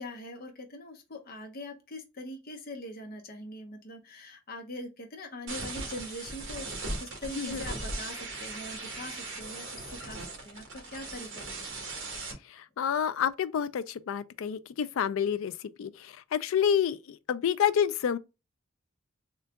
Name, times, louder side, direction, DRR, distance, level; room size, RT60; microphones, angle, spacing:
voice 1, 0.0-11.7, left 1 dB, 45° left, 0.7 m, -42 dB
sound 1, 5.5-12.3, right 2 dB, 70° right, 1.3 m, -38 dB
voice 2, 12.4-18.2, left 8 dB, 75° left, 0.3 m, -29 dB
3.8 x 2.3 x 3.4 m
head